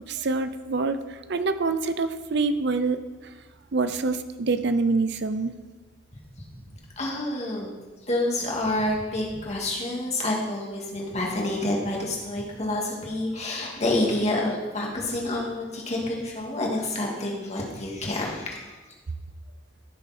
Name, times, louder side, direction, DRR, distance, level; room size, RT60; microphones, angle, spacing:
voice 1, 0.1-3.3 3.7-5.5, right 3 dB, 60° right, 10 dB, 0.6 m, -26 dB
voice 2, 7.0-7.7 8.1-18.6, left 1 dB, 35° left, -2 dB, 2.3 m, -28 dB
15.5 x 7.0 x 4.3 m, 1.3 s
head